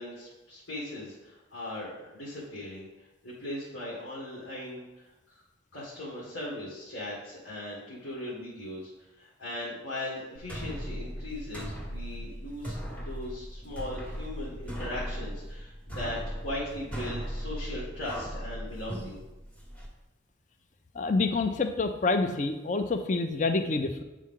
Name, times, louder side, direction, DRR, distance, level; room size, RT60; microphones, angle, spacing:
voice 1, 0.0-2.9 3.2-5.4 5.7-8.9 9.2-19.2, left 1 dB, 80° left, -9 dB, 1.9 m, -39 dB
sound 1, 10.4-19.9, equal, 5° left, 0.9 m, -38 dB
voice 2, 20.9-24.0, left 3 dB, 40° left, 7 dB, 0.5 m, -27 dB
9.0 x 3.7 x 3.7 m, 1.0 s
head